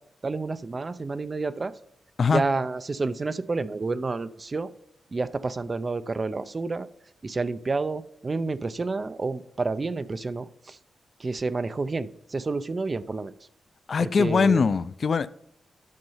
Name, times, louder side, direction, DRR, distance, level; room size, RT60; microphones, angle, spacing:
voice 1, 0.2-1.7 2.3-4.7 5.1-6.9 7.2-10.8 11.2-13.3 14.0-14.7, right 3 dB, 30° right, 0.5 m, -29 dB
voice 2, 13.9-15.3, left 5 dB, 45° left, 0.4 m, -22 dB
10.5 x 6.7 x 5.6 m
wide cardioid pair, 155°, 0 cm